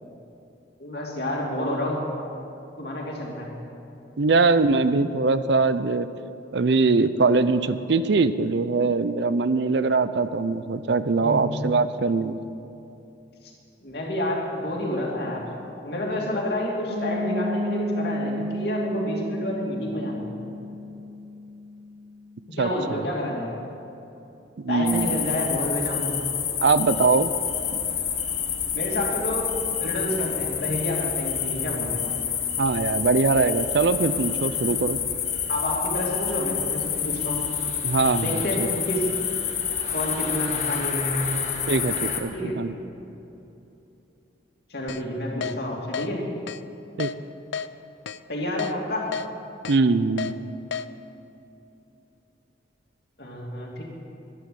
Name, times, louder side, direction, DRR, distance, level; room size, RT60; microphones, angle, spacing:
voice 1, 0.8-2.1 2.8-3.5 11.2-11.5 13.8-15.5 15.8-20.3 22.6-23.5 24.7-26.2 28.7-29.5 29.8-32.1 35.5-37.4 38.2-39.1 39.9-41.2 42.3-42.6 44.7-46.2 48.3-49.1 53.2-53.8, left 1 dB, 55° left, -2 dB, 2.6 m, -29 dB
voice 2, 4.2-6.1 6.5-12.4 22.6-22.7 22.9-23.0 24.6-25.2 26.6-27.3 32.6-35.0 37.8-38.7 41.7-42.7 47.0-47.1 49.7-50.3, right 4 dB, 65° right, 13 dB, 0.5 m, -22 dB
Piano, 16.9-22.6, equal, 40° right, 2.4 m, -32 dB
sound 1, 24.9-42.2, left 8 dB, 40° left, 1.3 m, -28 dB
Keyboard (musical), 44.9-45.0 45.4-45.5 45.9-46.1 46.5-46.6 47.0-47.1 47.5-47.7 48.1-48.2 48.6-48.7 49.1-49.3 49.6-49.8 50.2-50.3 50.7-50.8, left 6 dB, 75° left, 0.5 m, -30 dB
12.0 x 11.5 x 7.7 m, 2.9 s
head